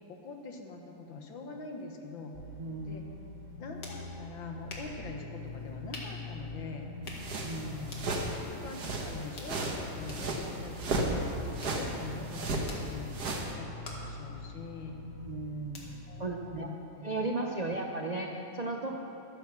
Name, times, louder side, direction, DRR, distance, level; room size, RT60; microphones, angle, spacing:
voice 1, 0.1-2.4 2.8-3.0 3.6-6.9 7.6-8.1 8.4-11.3 11.7-15.0 16.1-17.1 17.4-17.7 18.9-19.0, left 3 dB, 90° left, 3 dB, 2.1 m, -44 dB
sound 1, 2.3-16.3, left 3 dB, 40° left, 2.1 m, -44 dB
voice 2, 2.6-3.0 7.4-7.9 15.3-15.8 16.2-16.7 17.0-19.0, right 2 dB, 80° right, 1 dB, 0.3 m, -35 dB
sound 2, 3.4-17.1, left 2 dB, 60° left, 2.4 m, -51 dB
sound 3, 7.2-13.5, right 2 dB, 55° right, 1.8 m, -35 dB
12.0 x 10.0 x 7.1 m, 3.0 s
omnidirectional pair, 2.0 m